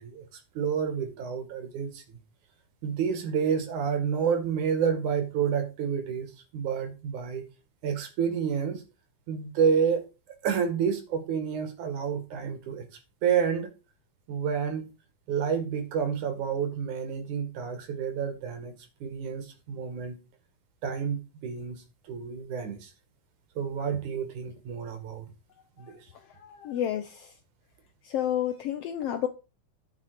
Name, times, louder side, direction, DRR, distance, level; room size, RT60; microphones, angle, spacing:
voice 1, 0.0-2.2 2.8-7.5 7.8-8.8 9.3-10.1 10.4-12.9 13.2-13.7 14.3-14.9 15.3-18.7 19.0-20.2 20.8-22.9 23.6-25.3 25.8-26.0, right 7 dB, 75° right, 3.4 m, -29 dB
voice 2, 25.8-27.3 28.0-29.3, left 10 dB, 75° left, 1.4 m, -31 dB
10.5 x 6.0 x 5.1 m
omnidirectional pair, 3.5 m